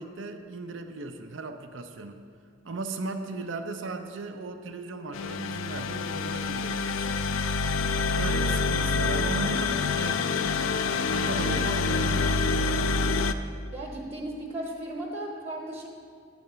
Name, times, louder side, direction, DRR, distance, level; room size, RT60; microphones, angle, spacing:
voice 1, 0.0-2.2 2.6-7.1 8.2-10.7 11.1-12.4, right 3 dB, 70° right, 7 dB, 0.6 m, -36 dB
sound 1, 5.1-13.3, left 4 dB, 80° left, 0.4 m, -27 dB
voice 2, 13.7-15.9, right 1 dB, 35° right, -1 dB, 1.1 m, -36 dB
9.5 x 4.1 x 6.7 m, 2.1 s
head